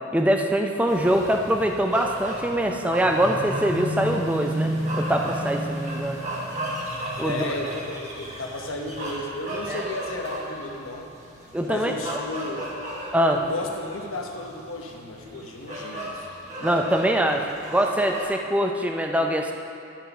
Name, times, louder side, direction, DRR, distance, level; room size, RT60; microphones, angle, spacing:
voice 1, 0.1-6.2 7.2-7.5 9.7-9.8 11.5-12.2 13.1-13.4 16.6-19.5, right 1 dB, 5° right, 2 dB, 0.4 m, -23 dB
sound 1, 0.9-18.3, equal, 35° right, 1.3 m, -33 dB
voice 2, 7.2-11.1 11.6-12.7 13.3-16.2 16.6-16.7 17.4-17.5, left 2 dB, 70° left, 2 dB, 0.9 m, -34 dB
11.5 x 4.0 x 5.5 m, 2.7 s
head